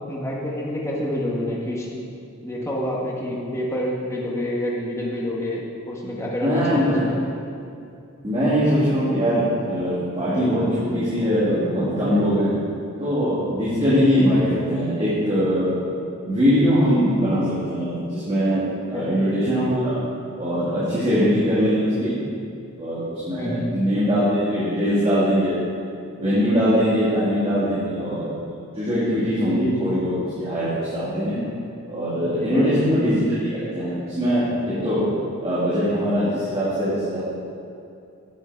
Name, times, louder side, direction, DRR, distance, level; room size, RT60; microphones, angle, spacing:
voice 1, 0.1-1.9 2.4-7.2 18.9-19.2 23.4-23.7 32.4-32.7, left 1 dB, 15° left, -4 dB, 1.3 m, -27 dB
voice 2, 6.4-7.0 8.2-12.5 13.0-15.7 16.3-18.6 18.9-19.9 20.4-22.2 22.8-25.6 26.1-28.4 28.7-31.4 31.9-35.0 35.4-37.2, equal, 25° right, -11 dB, 2.1 m, -21 dB
9.9 x 6.3 x 4.6 m, 2.6 s
head